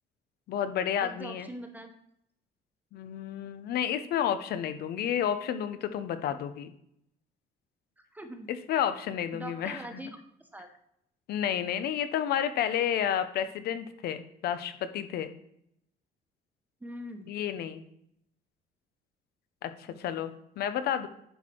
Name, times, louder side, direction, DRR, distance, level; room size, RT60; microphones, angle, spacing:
voice 1, 0.5-1.5 2.9-6.7 8.5-10.0 11.3-15.3 17.3-17.8 19.6-21.1, left 9 dB, 70° left, 10 dB, 0.9 m, -31 dB
voice 2, 1.0-1.9 8.0-8.5 9.3-10.7 16.8-17.3 19.9-20.0, right 1 dB, 10° right, 5 dB, 1.1 m, -43 dB
10.5 x 4.4 x 4.6 m, 0.75 s
cardioid pair, 110°, 17 cm